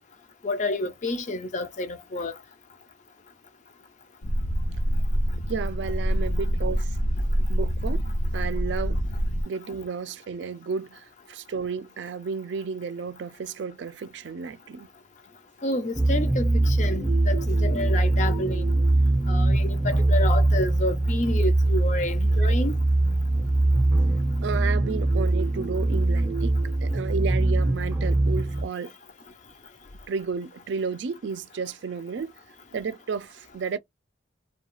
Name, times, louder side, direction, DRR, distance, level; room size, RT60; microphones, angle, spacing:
voice 1, 0.4-2.3 15.6-18.7 19.3-22.7, left 2 dB, 40° left, 0.4 m, -29 dB
sound 1, 4.2-9.4, equal, 90° left, 0.6 m, -26 dB
voice 2, 5.5-7.0 7.5-8.0 8.3-9.0 9.5-14.9 24.4-26.5 26.8-28.9 30.1-32.3 32.7-33.8, right 5 dB, 75° right, 0.4 m, -32 dB
sound 2, 15.9-28.7, right 2 dB, 10° right, 0.6 m, -22 dB
2.3 x 2.2 x 3.0 m
head